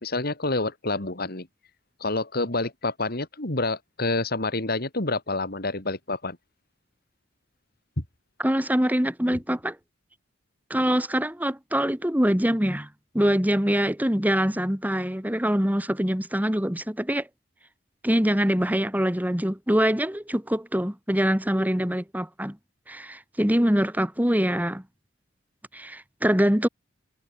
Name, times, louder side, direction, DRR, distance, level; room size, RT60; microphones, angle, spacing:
voice 1, 0.0-1.5 2.0-6.4, left 2 dB, 55° left, 3.7 m, -28 dB
voice 2, 8.4-9.8 10.7-12.9 13.1-17.3 18.0-22.6 22.9-24.8 25.7-26.7, equal, 10° right, 2.3 m, -24 dB
head